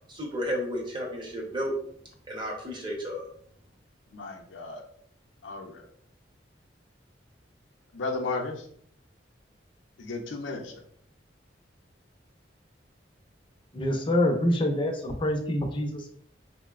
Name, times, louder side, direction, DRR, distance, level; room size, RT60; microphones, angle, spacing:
voice 1, 0.1-1.7 2.3-3.2, equal, 25° right, -1 dB, 0.7 m, -32 dB
voice 2, 4.1-4.8 5.4-5.8 7.9-8.6 10.0-10.7, left 3 dB, 85° left, 2 dB, 0.5 m, -34 dB
voice 3, 13.7-16.1, left 1 dB, 25° left, 3 dB, 0.4 m, -26 dB
3.8 x 2.0 x 2.3 m, 0.63 s
head